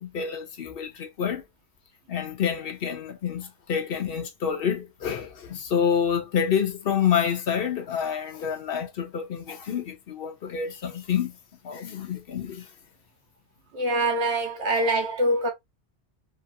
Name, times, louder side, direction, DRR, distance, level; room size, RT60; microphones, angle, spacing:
voice 1, 0.0-1.4 2.1-11.4 11.6-12.7, left 7 dB, 60° left, 0.8 m, -28 dB
voice 2, 13.7-15.5, right 1 dB, 75° right, 1.2 m, -24 dB
2.9 x 2.5 x 2.4 m
omnidirectional pair, 1.1 m